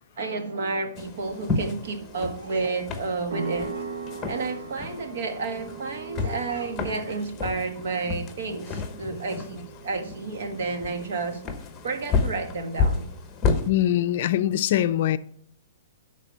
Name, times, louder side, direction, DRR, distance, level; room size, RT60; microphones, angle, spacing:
voice 1, 0.1-3.9 4.3-13.1, right 4 dB, 65° right, 1.6 m, -31 dB
sound 1, 1.0-13.7, left 4 dB, 15° left, 0.9 m, -31 dB
sound 2, 3.3-11.6, right 4 dB, 85° right, 1.2 m, -40 dB
voice 2, 13.7-15.2, left 12 dB, 45° left, 0.4 m, -22 dB
11.0 x 4.2 x 5.5 m
hypercardioid pair, 165°, 0 cm